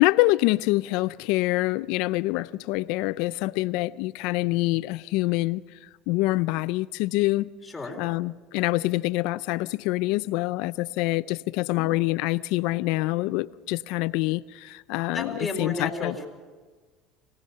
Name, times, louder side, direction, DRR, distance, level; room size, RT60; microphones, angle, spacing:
voice 1, 0.0-5.6 6.1-7.5 8.0-16.2, left 20 dB, 75° left, 0.5 m, -25 dB
voice 2, 7.6-8.0 11.6-11.9 15.1-16.3, left 2 dB, 15° left, 3.9 m, -33 dB
24.5 x 18.5 x 5.7 m
supercardioid pair, 115°, 0 cm